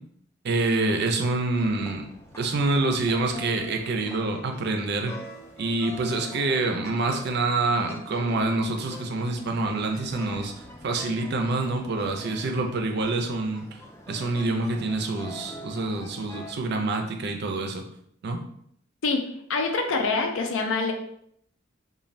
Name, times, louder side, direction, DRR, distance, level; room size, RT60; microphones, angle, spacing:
voice 1, 0.4-2.0 2.4-5.2 5.6-10.5 10.8-13.7 14.1-17.8 18.2-18.4, right 2 dB, 55° right, 4 dB, 0.4 m, -26 dB
sound 1, 1.5-16.5, left 1 dB, 15° left, 0.3 m, -44 dB
voice 2, 19.5-20.9, left 4 dB, 75° left, 4 dB, 0.4 m, -25 dB
2.5 x 2.2 x 3.1 m, 0.70 s
head